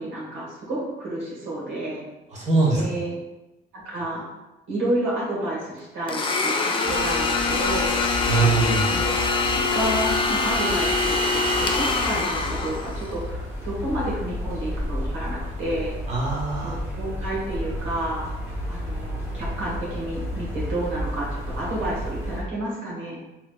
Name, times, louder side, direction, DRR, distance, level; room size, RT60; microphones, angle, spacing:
voice 1, 0.0-2.0 2.7-3.1 3.7-4.2 4.7-7.9 8.9-15.9 16.6-18.3 18.7-23.2, right 1 dB, 85° right, -5 dB, 1.2 m, -30 dB
voice 2, 2.3-3.1 8.3-8.9 16.1-16.8, right 3 dB, 35° right, -5 dB, 1.1 m, -22 dB
Domestic sounds home sounds, 6.1-13.1, left 3 dB, 25° left, 0.4 m, -24 dB
sound 1, 6.8-22.4, left 1 dB, 10° right, 0.9 m, -32 dB
3.1 x 3.0 x 2.3 m, 1.0 s
cardioid pair, 90°, 20 cm